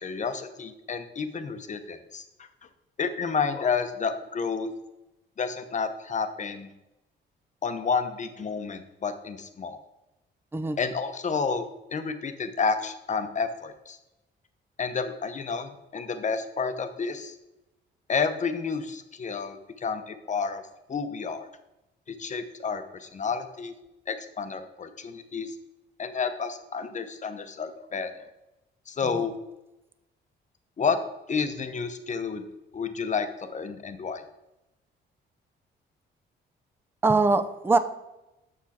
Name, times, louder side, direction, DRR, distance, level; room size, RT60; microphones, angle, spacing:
voice 1, 0.0-2.2 3.0-4.7 5.4-6.7 7.6-9.8 10.8-14.0 14.8-17.3 18.1-20.6 20.9-21.5 22.1-23.7 24.1-25.5 26.0-28.1 28.9-29.3 30.8-31.0 31.3-32.4 32.7-34.2, left 5 dB, 40° left, 8 dB, 0.8 m, -30 dB
voice 2, 37.0-37.8, right 3 dB, 10° right, 11 dB, 0.5 m, -22 dB
6.3 x 6.1 x 4.3 m, 0.95 s
cardioid pair, 90°, 20 cm